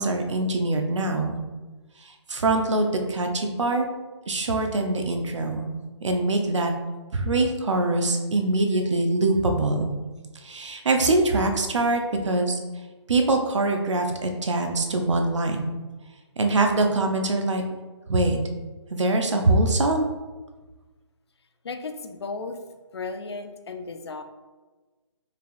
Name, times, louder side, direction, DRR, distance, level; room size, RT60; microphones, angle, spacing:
voice 1, 0.0-1.4 2.0-3.9 4.3-5.7 6.0-6.7 7.1-9.9 10.4-12.6 13.1-15.8 16.4-17.6 18.1-18.4 18.9-20.1, right 2 dB, 75° right, 4 dB, 0.7 m, -23 dB
voice 2, 21.6-22.6 22.9-24.2, left 4 dB, 60° left, 7 dB, 0.5 m, -34 dB
4.7 x 3.5 x 2.4 m, 1.3 s
hypercardioid pair, 170°, 15 cm